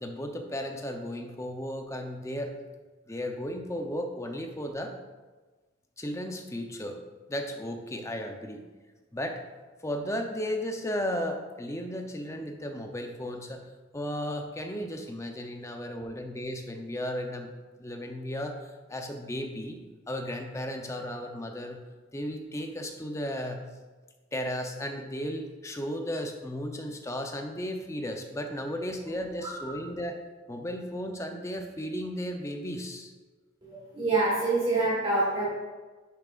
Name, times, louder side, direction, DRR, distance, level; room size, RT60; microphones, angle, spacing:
voice 1, 0.0-2.5 3.1-5.0 6.0-8.6 9.1-9.4 9.8-17.5 17.8-19.8 20.1-21.8 22.1-23.6 24.3-30.2 30.5-33.1, equal, 15° left, 4 dB, 0.6 m, -35 dB
voice 2, 33.6-35.5, right 2 dB, 25° right, -7 dB, 1.5 m, -26 dB
10.5 x 7.3 x 2.5 m, 1.3 s
head